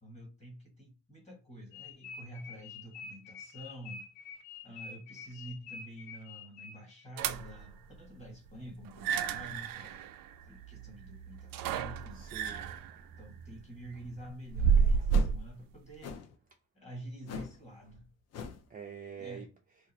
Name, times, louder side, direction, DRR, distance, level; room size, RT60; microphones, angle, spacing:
voice 1, 0.0-4.1 4.6-10.0 10.4-12.2 13.2-16.2 16.7-18.1 19.2-19.5, right 1 dB, 20° left, 1.3 m, -48 dB
sound 1, 1.7-7.0, left 5 dB, 75° left, 1.1 m, -47 dB
sound 2, 7.2-7.7 8.9-15.5, right 6 dB, 90° right, 0.5 m, -31 dB
voice 2, 12.1-13.0 14.7-15.3 18.7-19.5, right 7 dB, 25° right, 0.4 m, -47 dB
sound 3, 15.1-15.4 16.0-16.4 17.3-17.6 17.9-18.0 18.3-18.7, left 6 dB, 50° left, 0.5 m, -41 dB
2.5 x 2.4 x 4.1 m
cardioid pair, 180°, 33 cm